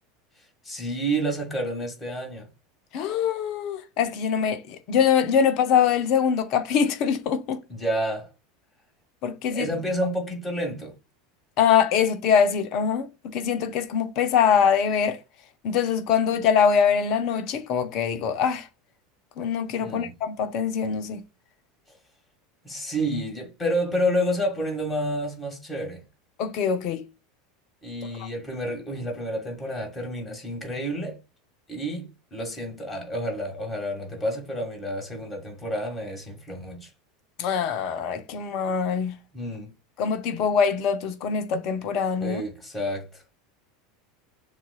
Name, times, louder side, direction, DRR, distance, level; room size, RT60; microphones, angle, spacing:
voice 1, 0.6-2.5 7.7-8.3 9.5-10.9 19.8-20.1 22.6-26.0 27.8-31.2 31.7-36.9 39.3-39.7 42.2-43.2, equal, 15° left, 1.8 m, -29 dB
voice 2, 2.9-7.6 9.2-9.7 11.6-15.2 15.6-18.7 19.4-21.2 26.4-27.0 28.2-28.3 37.4-39.2 40.0-42.4, left 7 dB, 45° left, 0.7 m, -23 dB
6.9 x 2.5 x 2.3 m
figure-of-eight pair, 80°, 0 cm